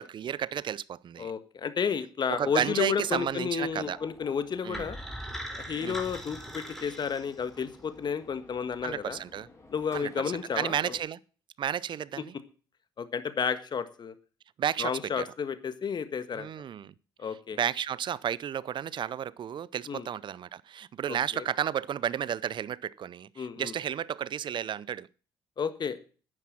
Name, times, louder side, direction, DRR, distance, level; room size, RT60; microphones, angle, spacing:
voice 1, 0.0-1.3 2.3-4.0 4.6-4.9 5.8-6.0 8.8-9.5 9.9-10.2 10.6-11.2 11.6-12.3 14.6-15.3 16.4-16.9 17.6-25.1, right 9 dB, 55° right, 0.6 m, -32 dB
voice 2, 1.2-5.0 5.6-9.2 9.7-10.9 13.0-14.1 14.8-16.5 17.2-17.6 19.9-20.1 21.1-21.4 23.4-23.7 25.6-26.0, left 6 dB, 50° left, 1.6 m, -32 dB
sound 1, 2.3-11.0, left 2 dB, 30° left, 5.9 m, -53 dB
sound 2, 4.7-7.8, equal, 5° left, 4.2 m, -40 dB
10.0 x 9.8 x 7.4 m
hypercardioid pair, 50°, 10 cm